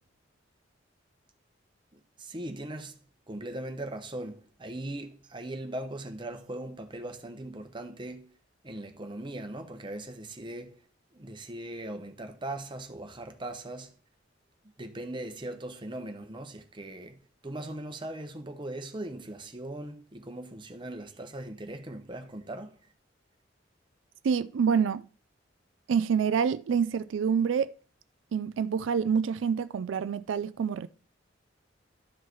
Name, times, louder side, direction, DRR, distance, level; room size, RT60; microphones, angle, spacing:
voice 1, 1.9-3.0 3.3-8.3 8.6-10.8 11.1-13.9 14.8-22.9, right 1 dB, 25° right, 1.0 m, -39 dB
voice 2, 24.2-25.0 25.9-27.7 28.3-30.9, right 6 dB, 85° right, 0.4 m, -27 dB
12.5 x 4.7 x 4.6 m
head